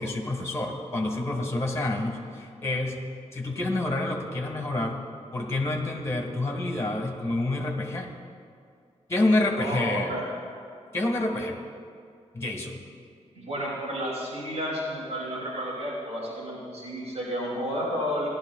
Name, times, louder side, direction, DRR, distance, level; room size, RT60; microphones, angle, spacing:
voice 1, 0.0-3.0 3.3-5.0 5.3-8.1 9.1-10.1 10.9-11.6 12.3-12.8, left 2 dB, 25° left, 1 dB, 1.6 m, -28 dB
voice 2, 9.6-10.2 13.3-18.3, equal, 65° right, -6 dB, 2.9 m, -31 dB
17.0 x 12.0 x 2.4 m, 2.3 s
wide cardioid pair, 115°, 12 cm